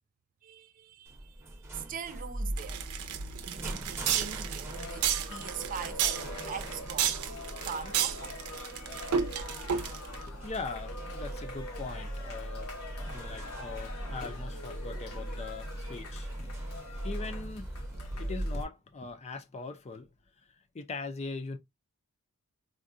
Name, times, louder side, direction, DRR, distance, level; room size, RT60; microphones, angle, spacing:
voice 1, 0.4-2.9 3.4-7.3 7.6-8.4, right 7 dB, 40° right, 0.4 m, -42 dB
sound 1, 1.1-18.6, right 1 dB, 10° right, 0.8 m, -40 dB
sound 2, 2.6-10.2, right 8 dB, 85° right, 0.6 m, -32 dB
Cheering, 4.7-18.5, left 2 dB, 85° left, 1.3 m, -45 dB
voice 2, 10.1-12.7 13.0-20.1 20.4-21.6, left 4 dB, 30° left, 0.4 m, -41 dB
3.7 x 2.2 x 2.5 m
head